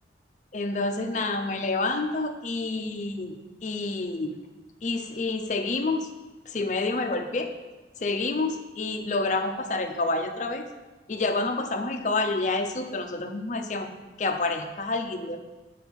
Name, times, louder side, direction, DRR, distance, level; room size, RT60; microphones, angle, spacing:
voice 1, 0.5-4.4 4.8-6.1 6.5-7.5 8.0-10.7 11.1-13.9 14.2-15.4, left 3 dB, 45° left, 6 dB, 0.5 m, -28 dB
6.2 x 5.0 x 5.3 m, 1.2 s
head